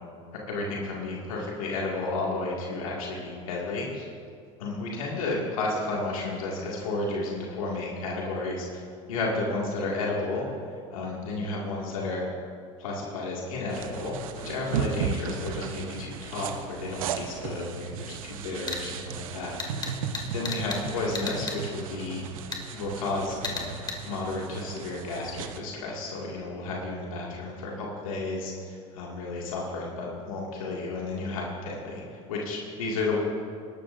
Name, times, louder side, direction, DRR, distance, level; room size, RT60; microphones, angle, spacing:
voice 1, 0.5-4.1 4.6-8.8 9.1-12.3 12.8-19.5 20.2-22.2 22.7-23.7 24.1-33.2, left 2 dB, 90° left, -3 dB, 2.1 m, -32 dB
sound 1, 13.7-25.6, right 7 dB, 85° right, 0.8 m, -36 dB
sound 2, 18.7-18.8 19.6-20.8 21.1-21.6 22.5-22.6 23.4-24.0, left 3 dB, 25° left, 2.1 m, -33 dB
20.0 x 12.5 x 2.6 m, 2.3 s
hypercardioid pair, 90°, 17 cm